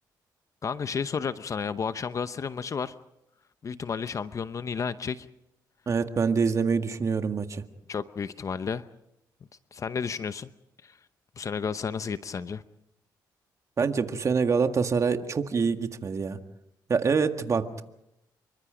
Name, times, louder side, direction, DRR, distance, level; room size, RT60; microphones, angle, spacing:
voice 1, 0.6-2.9 3.6-5.3 7.9-8.8 9.7-10.5 10.8-11.0 11.4-12.6, left 6 dB, 45° left, 12 dB, 0.8 m, -32 dB
voice 2, 5.9-7.6 13.8-16.4 16.9-17.8, right 5 dB, 40° right, 7 dB, 1.8 m, -25 dB
27.5 x 23.5 x 5.1 m, 0.84 s
cardioid pair, 90°, 8 cm